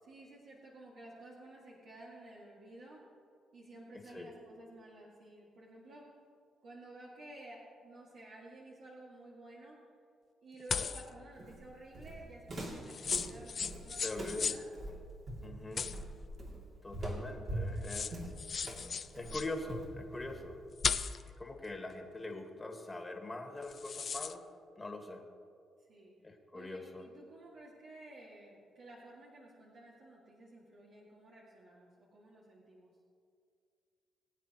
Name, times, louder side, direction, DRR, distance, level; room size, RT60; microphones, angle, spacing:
voice 1, 0.0-3.0 3.5-6.1 6.6-9.8 10.4-14.7 15.7-16.0 17.6-18.3 25.8-26.1 26.5-32.9, right 1 dB, 65° right, -5 dB, 2.1 m, -53 dB
sound 1, 10.7-11.1 12.9-14.6 15.8-16.5 17.5-17.6 17.8-19.5 20.8-21.3 23.6-24.3, left 6 dB, 45° left, 0.5 m, -36 dB
Walk footsteps, 11.4-20.6, right 1 dB, 50° right, 2.7 m, -43 dB
voice 2, 14.0-14.5 15.4-15.9 16.8-18.3 19.1-20.6 21.4-24.4 24.8-25.2 26.2-27.1, left 2 dB, 20° left, 2 dB, 1.8 m, -43 dB
22.0 x 9.1 x 3.0 m, 2.3 s
cardioid pair, 90°, 0 cm